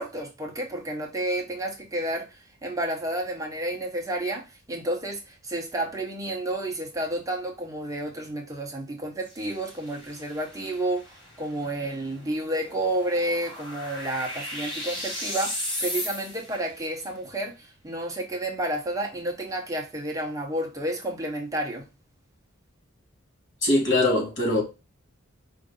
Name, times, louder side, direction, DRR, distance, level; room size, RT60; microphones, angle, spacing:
voice 1, 0.0-21.8, right 1 dB, 15° right, 0.8 m, -31 dB
sound 1, 9.2-16.6, left 1 dB, 25° left, 2.6 m, -36 dB
voice 2, 23.6-24.6, left 2 dB, 60° left, 2.6 m, -22 dB
5.1 x 2.6 x 3.6 m
head